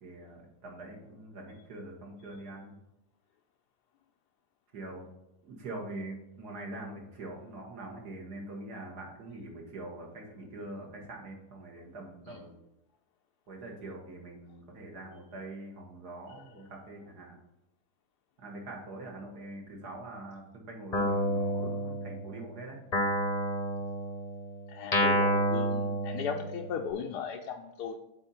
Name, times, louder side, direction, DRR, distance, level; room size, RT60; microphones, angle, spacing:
voice 1, 0.0-2.7 4.7-5.1 5.4-12.5 13.5-17.4 18.4-22.8, right 2 dB, 65° right, -1 dB, 2.1 m, -44 dB
Guitar, 20.9-22.4 22.9-26.8, equal, 30° left, 0.8 m, -30 dB
voice 2, 24.7-28.0, left 7 dB, 75° left, 2 dB, 1.1 m, -37 dB
7.9 x 4.2 x 4.3 m, 0.88 s
omnidirectional pair, 1.9 m